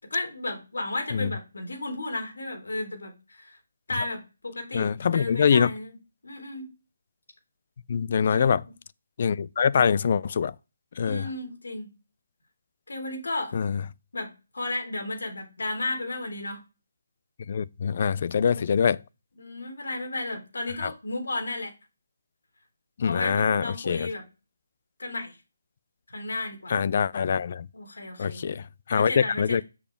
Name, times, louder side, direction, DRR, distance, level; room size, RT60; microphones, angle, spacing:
voice 1, 0.0-3.6 3.9-6.0 6.2-6.7 8.2-8.5 11.0-11.9 12.9-13.6 14.1-16.6 18.4-18.6 19.4-21.7 23.0-24.2 25.0-25.4 26.1-26.8 27.7-28.4 28.9-29.6, left 2 dB, 80° left, 3.9 m, -33 dB
voice 2, 4.7-5.7 7.9-8.6 9.2-10.5 11.0-11.3 13.5-13.8 17.5-19.0 20.8-20.9 23.0-24.1 26.7-27.7 28.2-29.6, left 7 dB, 40° left, 0.3 m, -24 dB
7.1 x 7.0 x 3.4 m
hypercardioid pair, 170°, 0 cm